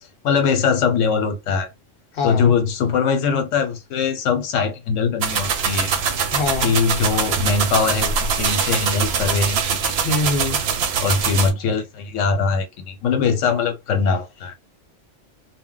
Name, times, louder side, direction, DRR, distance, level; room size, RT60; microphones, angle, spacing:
voice 1, 0.2-1.7 2.2-5.9 6.6-10.2 11.0-14.5, left 5 dB, 80° left, 1.0 m, -21 dB
voice 2, 2.1-2.5 6.3-6.7 10.0-10.6, left 3 dB, 55° left, 0.8 m, -23 dB
sound 1, 5.2-11.5, right 6 dB, 65° right, 0.8 m, -23 dB
2.1 x 2.1 x 3.7 m
omnidirectional pair, 1.3 m